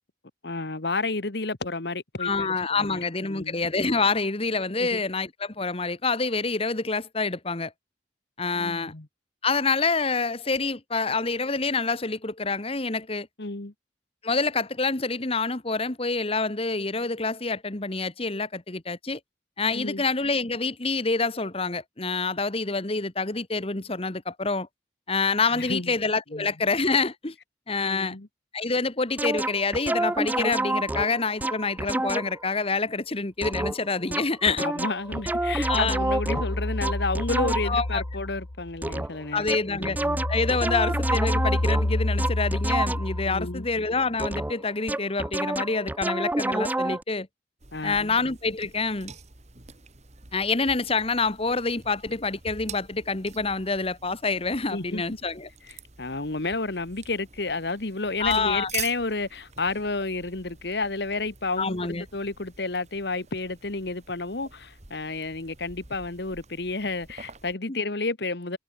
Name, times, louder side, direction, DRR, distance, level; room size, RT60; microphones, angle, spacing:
voice 1, 0.4-3.5 4.8-5.0 8.5-9.1 13.4-13.7 19.7-20.0 25.5-25.9 26.3-26.5 27.8-28.3 34.6-40.2 43.3-43.7 47.7-48.2 54.7-55.0 55.7-68.6, left 3 dB, 60° left, 1.5 m, -31 dB
voice 2, 2.2-7.7 8.4-8.9 9.4-13.3 14.2-19.2 19.6-24.7 25.1-27.3 27.7-28.2 28.5-34.7 35.7-36.0 37.6-38.0 39.3-40.0 40.3-47.3 47.8-49.1 50.3-55.5 58.2-58.7 61.6-62.0 67.7-67.8, left 4 dB, 30° left, 1.5 m, -27 dB
sound 1, 29.2-32.4 33.4-37.9 38.8-39.2 39.5-43.3 44.2-47.0, right 2 dB, 10° right, 0.4 m, -29 dB
sound 2, 35.1-39.0 39.4-44.0, left 1 dB, 85° left, 1.7 m, -29 dB
sound 3, 47.6-67.5, right 6 dB, 40° right, 2.2 m, -46 dB
head